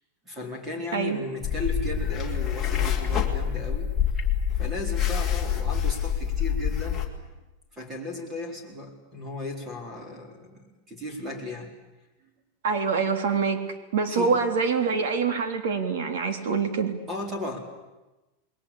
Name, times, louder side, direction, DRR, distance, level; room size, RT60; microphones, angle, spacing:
voice 1, 0.2-3.9 4.5-7.0 7.7-11.7 12.2-12.3 14.1-14.4 16.3-16.5 17.1-17.6, left 2 dB, 15° right, 3 dB, 4.2 m, -36 dB
voice 2, 0.9-1.2 12.6-13.6 13.9-16.9, right 5 dB, 70° right, 7 dB, 3.4 m, -25 dB
sound 1, 1.4-7.1, left 8 dB, 5° left, 2.6 m, -26 dB
28.5 x 21.5 x 8.7 m, 1.1 s
supercardioid pair, 180°, 0 cm